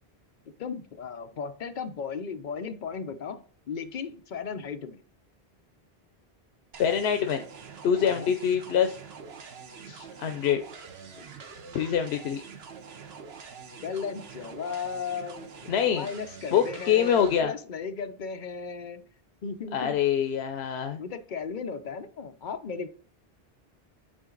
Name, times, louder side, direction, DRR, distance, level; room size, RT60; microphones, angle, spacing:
voice 1, 0.6-5.0 8.0-8.3 11.2-11.3 13.8-19.0 19.4-20.0 21.0-22.9, left 6 dB, 55° left, 0.8 m, -36 dB
sound 1, 6.7-17.4, right 5 dB, 80° right, 1.1 m, -45 dB
voice 2, 6.8-7.4 7.8-9.0 9.9-10.6 11.7-12.4 15.7-16.1 16.5-17.5 19.7-21.0, left 8 dB, 85° left, 0.9 m, -25 dB
8.9 x 3.9 x 3.8 m
omnidirectional pair, 1.0 m